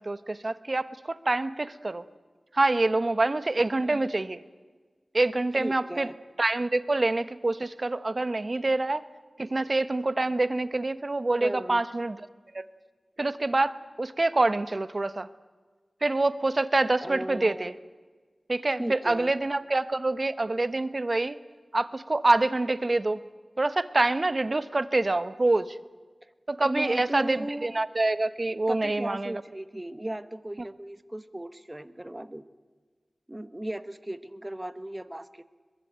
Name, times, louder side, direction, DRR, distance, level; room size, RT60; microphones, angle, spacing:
voice 1, 0.0-2.0 2.5-4.4 5.1-6.1 6.4-9.0 9.4-12.2 12.5-12.7 13.2-15.3 16.0-17.7 18.5-21.4 21.7-23.2 23.6-25.8 26.5-29.4, right 2 dB, 45° right, 14 dB, 1.1 m, -26 dB
voice 2, 5.6-6.1 11.4-11.8 17.0-17.8 18.8-19.3 26.2-26.3 26.6-27.8 28.7-32.4 33.3-35.4, right 1 dB, 20° right, 13 dB, 1.2 m, -36 dB
23.0 x 21.5 x 9.0 m, 1.4 s
wide cardioid pair, 65°, 0 cm